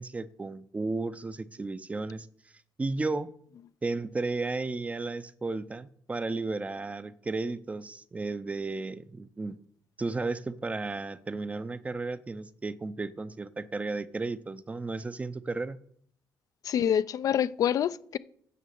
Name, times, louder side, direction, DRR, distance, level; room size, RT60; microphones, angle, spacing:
voice 1, 0.0-2.3 2.8-3.3 3.8-9.6 10.0-15.8, right 3 dB, 20° right, 0.6 m, -34 dB
voice 2, 16.6-18.2, left 9 dB, 60° left, 0.4 m, -26 dB
9.3 x 7.4 x 7.0 m
cardioid pair, 115°, 7 cm